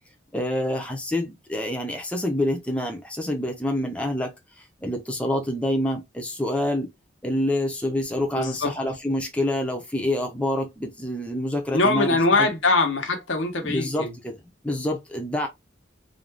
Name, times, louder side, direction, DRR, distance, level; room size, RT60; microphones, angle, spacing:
voice 1, 0.3-4.3 4.8-6.9 7.2-12.5 13.6-14.3 14.6-15.5, left 1 dB, 5° left, 0.5 m, -27 dB
voice 2, 8.3-8.7 11.7-14.2, left 3 dB, 90° left, 0.9 m, -22 dB
2.5 x 2.2 x 3.2 m
head